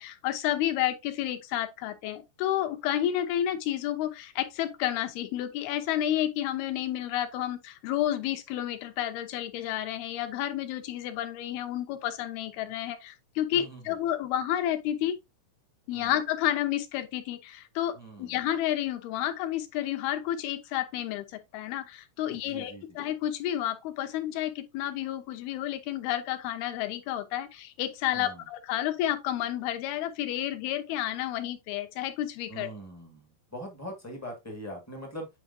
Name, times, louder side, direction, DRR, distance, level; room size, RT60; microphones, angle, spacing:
voice 1, 0.0-15.2 15.9-32.7, left 12 dB, 85° left, 2.9 m, -31 dB
voice 2, 13.5-14.0 15.9-16.1 17.9-18.4 22.2-23.0 28.1-28.5 32.5-35.3, right 1 dB, 25° left, 0.3 m, -42 dB
8.9 x 4.6 x 2.7 m
omnidirectional pair, 4.3 m